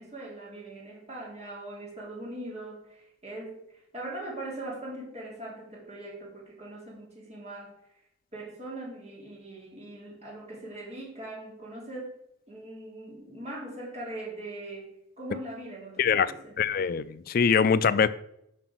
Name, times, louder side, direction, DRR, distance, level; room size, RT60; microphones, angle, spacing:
voice 1, 0.0-7.7 8.3-12.2 12.5-16.6, right 1 dB, 35° right, 2.7 m, -41 dB
voice 2, 16.0-16.3 16.6-18.1, left 6 dB, 50° left, 0.4 m, -23 dB
7.6 x 5.0 x 6.1 m
head